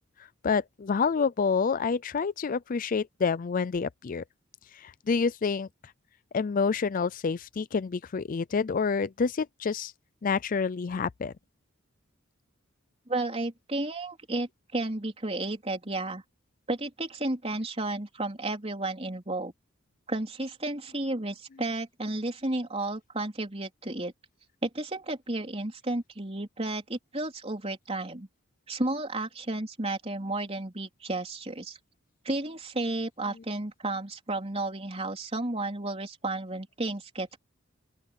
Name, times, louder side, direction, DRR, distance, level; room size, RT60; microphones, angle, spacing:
voice 1, 0.4-4.2 4.8-5.7 6.3-9.9 10.2-11.3, left 5 dB, 40° left, 0.4 m, -28 dB
voice 2, 13.1-16.2 16.7-19.5 20.1-24.1 24.6-28.3 28.7-31.8 32.2-37.4, right 2 dB, 30° right, 4.0 m, -32 dB
open air
head